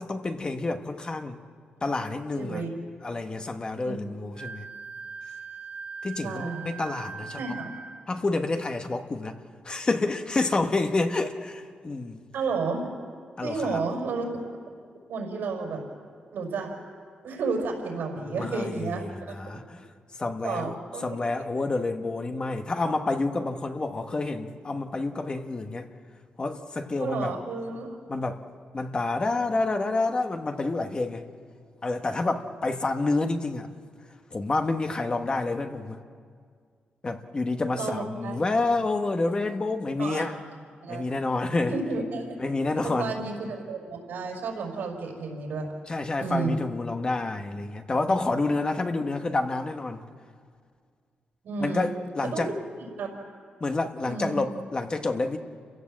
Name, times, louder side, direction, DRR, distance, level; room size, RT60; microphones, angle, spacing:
voice 1, 0.0-1.4 1.8-2.6 3.0-4.7 6.0-7.6 8.1-9.4 9.6-12.3 13.4-13.8 18.3-19.9 20.2-20.8 21.0-25.9 26.4-27.3 28.1-28.4 28.7-31.2 31.8-33.7 34.3-36.0 37.0-40.4 40.9-41.8 42.4-43.2 45.9-50.0 51.6-52.5 53.6-55.4, left 3 dB, 30° left, 6 dB, 1.2 m, -28 dB
voice 2, 2.4-2.7 3.8-4.0 6.2-6.7 7.4-7.7 12.3-12.9 13.4-14.4 15.1-15.8 16.3-16.7 17.2-19.0 20.4-21.0 21.4-21.5 27.0-28.0 37.8-38.4 40.0-40.2 40.8-41.1 41.7-42.4 43.0-45.7 46.2-46.6 51.4-51.9 52.2-52.5 53.0-53.1 54.0-54.4, right 4 dB, 90° right, 1 dB, 5.2 m, -31 dB
Wind instrument woodwind instrument, 4.4-8.1, right 5 dB, 50° right, 2.0 m, -40 dB
29.5 x 16.0 x 7.6 m, 2.1 s
wide cardioid pair, 125°, 3 cm